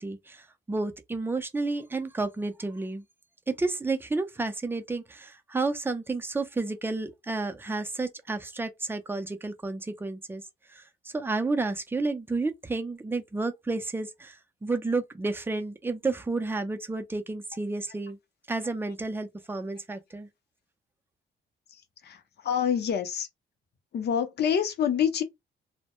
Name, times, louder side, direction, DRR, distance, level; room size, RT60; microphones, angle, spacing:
voice 1, 0.0-3.0 3.5-10.4 10.7-14.4 14.6-18.2 18.5-20.3, right 3 dB, 10° right, 0.5 m, -31 dB
voice 2, 21.7-23.3 23.9-25.2, left 8 dB, 55° left, 0.6 m, -27 dB
2.1 x 2.1 x 2.9 m
cardioid pair, 90°, 20 cm